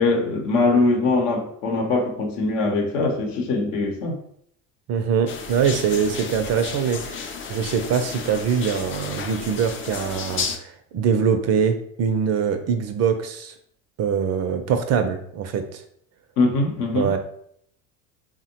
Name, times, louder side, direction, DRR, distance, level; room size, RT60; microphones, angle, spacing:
voice 1, 0.0-4.2 16.4-17.1, left 3 dB, 70° left, 2 dB, 0.8 m, -22 dB
voice 2, 4.9-13.5 14.0-15.8 16.9-17.2, right 7 dB, 40° right, 7 dB, 0.4 m, -23 dB
sound 1, 5.3-10.6, left 6 dB, 35° left, 0.4 m, -32 dB
3.5 x 2.1 x 2.8 m, 0.66 s
hypercardioid pair, 75°, 39 cm